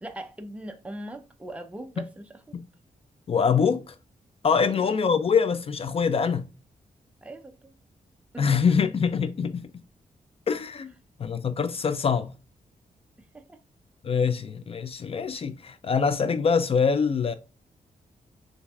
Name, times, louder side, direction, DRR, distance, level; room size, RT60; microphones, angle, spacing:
voice 1, 0.0-2.6 4.6-4.9 7.2-7.7 8.3-8.5 13.2-13.6, right 1 dB, 10° right, 0.6 m, -41 dB
voice 2, 3.3-4.0 4.4-6.5 8.4-9.7 10.5-10.9 11.2-12.3 14.0-17.3, left 6 dB, 45° left, 0.4 m, -24 dB
6.9 x 2.6 x 2.3 m
wide cardioid pair, 120°, 14 cm